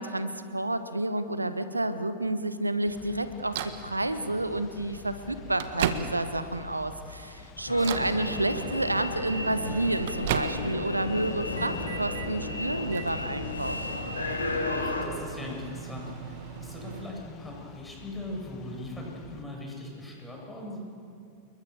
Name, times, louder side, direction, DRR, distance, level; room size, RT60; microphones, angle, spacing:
voice 1, 0.0-13.8, right 1 dB, 85° right, 11 dB, 1.2 m, -30 dB
sound 1, 2.9-19.4, left 5 dB, 35° left, 2.0 m, -49 dB
Microwave oven, 3.5-3.8 4.8-4.9 5.3-6.5 7.0-7.3 7.8-8.2 9.4-10.9 11.2-12.3 12.9-17.1, right 8 dB, 55° right, 1.6 m, -36 dB
sound 2, 7.7-15.1, left 2 dB, 75° left, 3.0 m, -33 dB
voice 2, 7.7-8.1 14.7-20.8, left 1 dB, 10° left, -2 dB, 7.7 m, -40 dB
28.5 x 22.0 x 7.1 m, 2.5 s
figure-of-eight pair, 90°, 0 cm